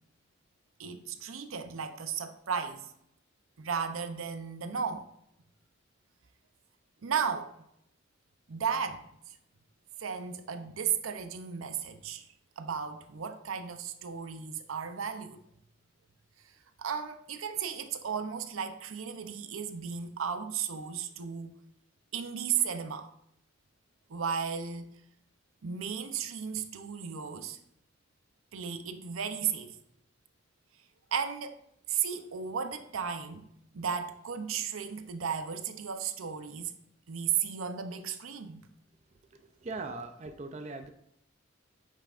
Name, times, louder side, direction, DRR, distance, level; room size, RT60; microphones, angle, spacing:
voice 1, 0.8-2.9 3.6-5.1 7.0-7.5 8.5-9.3 10.0-12.3 12.6-15.4 16.8-21.5 22.1-23.1 24.1-24.9 25.6-27.6 28.5-29.8 31.1-31.5 31.9-36.7 37.1-38.6, right 7 dB, 90° right, 0.6 m, -34 dB
voice 2, 39.6-40.9, right 3 dB, 35° right, 0.4 m, -39 dB
8.4 x 5.6 x 2.5 m
head